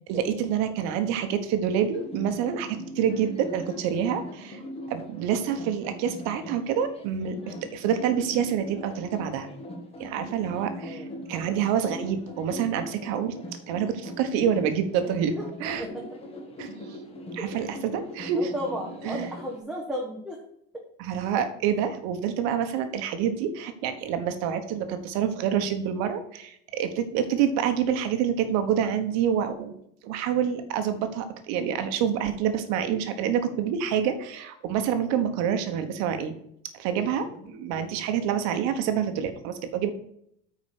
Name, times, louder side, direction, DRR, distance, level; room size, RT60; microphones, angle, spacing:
voice 1, 0.1-4.6 4.9-9.5 10.0-13.3 13.7-15.3 15.6-15.8 16.6-16.7 17.3-18.5 19.0-19.3 21.0-29.8 30.0-36.3 36.8-39.9, right 8 dB, 50° right, 8 dB, 1.2 m, -27 dB
sound 1, 1.9-19.6, equal, 15° left, 1.3 m, -41 dB
voice 2, 10.8-11.5 15.3-15.4 15.8-16.0 17.4-17.7 18.3-20.4 36.9-37.5, equal, ahead, -3 dB, 1.0 m, -36 dB
8.8 x 4.8 x 6.5 m, 0.71 s
cardioid pair, 170°, 35 cm